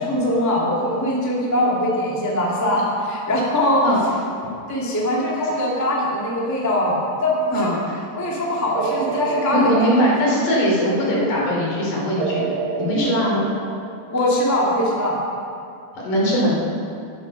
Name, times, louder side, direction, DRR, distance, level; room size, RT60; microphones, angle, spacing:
voice 1, 0.0-3.8 4.7-7.7 8.1-9.9 11.1-11.2 12.9-13.1 14.1-15.2, left 1 dB, 5° left, -5 dB, 1.4 m, -22 dB
sound 1, 6.8-7.4 8.8-10.8 12.2-14.3, right 5 dB, 70° right, 2.0 m, -29 dB
voice 2, 7.5-8.0 9.5-12.5 12.8-13.5 15.9-16.6, equal, 60° left, -4 dB, 4.9 m, -20 dB
13.0 x 12.5 x 5.7 m, 2.5 s
omnidirectional pair, 4.2 m